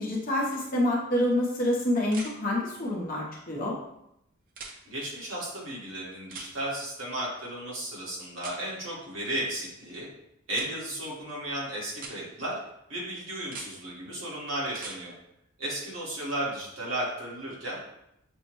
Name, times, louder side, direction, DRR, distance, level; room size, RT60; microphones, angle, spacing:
voice 1, 0.0-3.7, left 1 dB, 45° left, -3 dB, 0.7 m, -27 dB
sound 1, 0.5-0.6 2.1-2.3 4.5-4.8 6.3-6.5 8.4-8.6 10.5-10.7 11.9-12.2 13.4-13.7 14.7-15.0 17.0-17.1, right 4 dB, 45° right, 0.5 m, -42 dB
voice 2, 4.9-10.1 10.5-12.6 12.9-15.1 15.6-17.8, right 1 dB, 75° right, -5 dB, 1.4 m, -34 dB
6.0 x 2.1 x 3.0 m, 0.80 s
head